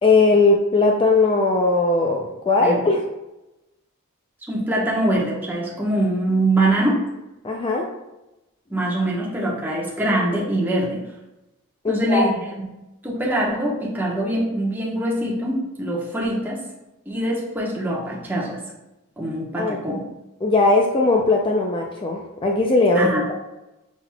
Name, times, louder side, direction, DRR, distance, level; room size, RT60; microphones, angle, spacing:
voice 1, 0.0-3.0 7.4-7.9 11.8-12.3 19.6-19.8 20.4-23.3, left 3 dB, 25° left, 0 dB, 0.4 m, -19 dB
voice 2, 4.4-7.1 8.7-11.0 11.9-12.7 13.0-16.6 17.1-18.6 19.2-20.1 22.9-23.2, right 1 dB, 10° right, -5 dB, 1.0 m, -23 dB
6.1 x 3.9 x 2.2 m, 0.96 s
head